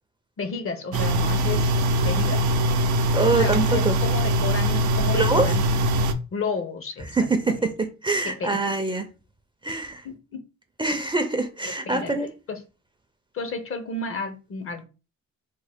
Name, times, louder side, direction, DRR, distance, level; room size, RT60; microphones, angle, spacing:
voice 1, 0.4-2.5 3.3-5.6 6.3-7.3 8.2-8.6 10.0-10.5 11.6-12.1 12.5-12.6 13.3-14.8, left 4 dB, 45° left, 0.8 m, -32 dB
sound 1, 0.9-6.1, right 1 dB, 75° right, 0.6 m, -22 dB
voice 2, 3.1-4.0 5.1-5.5 7.1-9.0 9.6-10.1 10.8-12.3, right 3 dB, 15° right, 0.5 m, -24 dB
3.6 x 2.1 x 3.5 m
cardioid pair, 90°, 30 cm